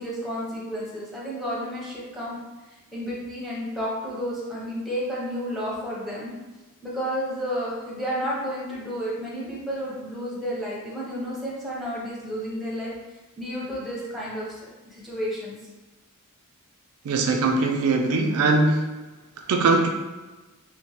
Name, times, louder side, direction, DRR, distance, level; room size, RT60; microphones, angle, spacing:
voice 1, 0.0-2.4 2.9-6.3 6.8-12.9 13.4-15.5, equal, ahead, -6 dB, 0.6 m, -31 dB
voice 2, 17.0-18.9 19.5-19.9, right 3 dB, 70° right, 3 dB, 0.3 m, -21 dB
2.9 x 2.1 x 2.8 m, 1.2 s
head